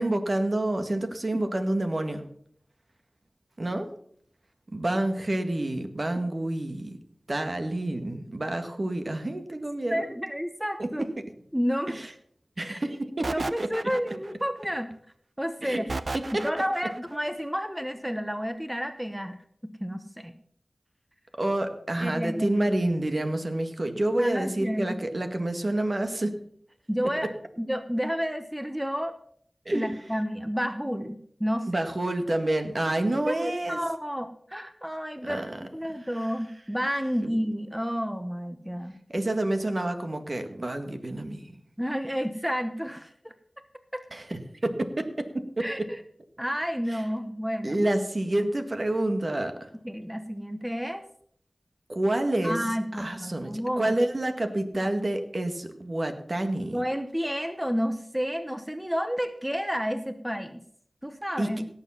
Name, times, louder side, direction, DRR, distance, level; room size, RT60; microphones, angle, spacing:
voice 1, 0.0-2.2 3.6-3.9 4.7-7.0 7.3-10.1 10.8-10.9 11.9-12.1 12.6-13.3 15.6-15.8 16.1-16.3 21.4-26.3 29.7-29.9 31.7-33.8 35.2-35.6 37.2-37.3 39.1-41.4 44.1-45.1 45.3-45.7 46.9-47.0 47.6-49.7 51.9-52.6 53.0-56.8 61.4-61.5, right 1 dB, 50° right, 7 dB, 1.8 m, -28 dB
voice 2, 1.1-1.5 9.9-11.1 11.5-12.0 12.7-12.8 13.3-14.9 15.4-15.8 16.4-20.3 22.0-22.6 24.2-25.0 26.9-27.3 27.6-29.2 29.7-31.8 33.3-39.0 41.8-43.3 43.9-44.0 45.6-46.0 46.4-47.8 49.8-51.0 52.4-54.0 56.7-60.6 61.0-61.6, equal, 5° right, 9 dB, 1.0 m, -30 dB
sound 1, 13.2-14.5 15.9-17.0, right 3 dB, 65° right, 0.7 m, -34 dB
17.5 x 7.4 x 5.7 m, 0.64 s
wide cardioid pair, 50°, 0 cm